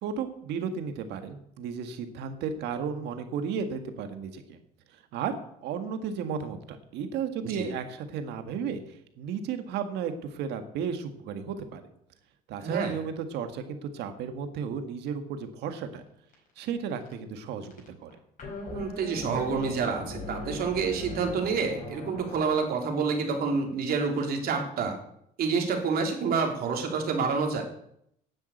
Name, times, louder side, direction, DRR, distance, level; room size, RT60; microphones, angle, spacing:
voice 1, 0.0-4.6 4.9-11.8 12.5-16.0 16.6-17.7 18.0-18.1, right 6 dB, 85° right, 8 dB, 1.7 m, -34 dB
voice 2, 12.6-12.9 18.7-25.0 25.4-27.6, right 5 dB, 65° right, 2 dB, 3.2 m, -28 dB
sound 1, 16.0-16.1 16.3-16.6 16.9-17.4 17.6-22.5, left 2 dB, 50° left, 4.9 m, -40 dB
9.8 x 8.5 x 8.4 m, 0.73 s
cardioid pair, 110°, 17 cm